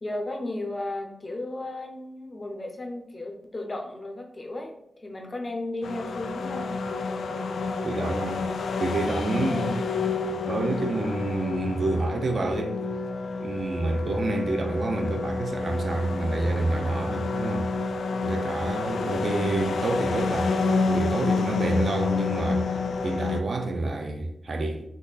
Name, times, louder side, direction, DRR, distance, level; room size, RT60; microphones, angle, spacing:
voice 1, 0.0-4.7 5.0-6.7 9.4-9.7, left 2 dB, 25° left, 0.6 m, -34 dB
sound 1, 5.8-23.4, left 4 dB, 80° left, 0.4 m, -29 dB
voice 2, 7.8-8.5 8.8-9.8 10.5-12.8 13.4-17.7 18.2-24.8, right 2 dB, 45° right, 0.5 m, -28 dB
3.6 x 3.1 x 3.9 m
wide cardioid pair, 170°, 0 cm